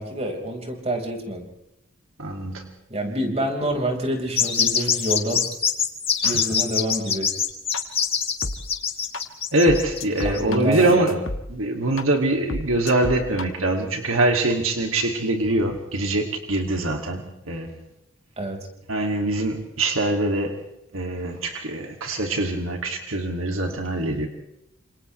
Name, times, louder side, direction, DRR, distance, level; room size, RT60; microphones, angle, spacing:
voice 1, 0.0-1.5 2.9-5.5 6.2-7.3 10.2-11.0 18.4-18.7, equal, 30° right, 1 dB, 5.1 m, -27 dB
voice 2, 2.2-2.7 6.2-6.4 9.5-11.2 11.5-17.7 18.9-20.6 20.9-24.3, right 2 dB, 80° right, 3 dB, 2.6 m, -23 dB
sound 1, 4.4-10.4, left 7 dB, 30° left, 2.7 m, -23 dB
sound 2, 7.7-7.8 8.4-8.5 9.1-9.2 9.7-11.4 12.0-12.1 12.5-13.4, left 2 dB, 70° left, 1.7 m, -30 dB
29.5 x 27.0 x 3.3 m, 0.86 s
head